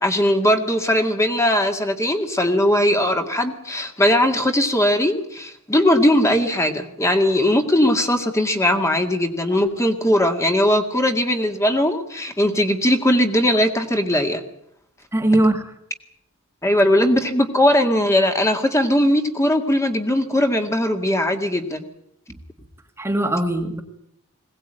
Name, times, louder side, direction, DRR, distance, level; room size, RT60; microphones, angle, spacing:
voice 1, 0.0-14.4 16.6-21.8, left 1 dB, 15° left, 4 dB, 2.0 m, -19 dB
voice 2, 15.1-15.6 23.0-23.8, right 1 dB, 10° right, 4 dB, 1.8 m, -20 dB
21.5 x 18.0 x 9.0 m, 0.71 s
head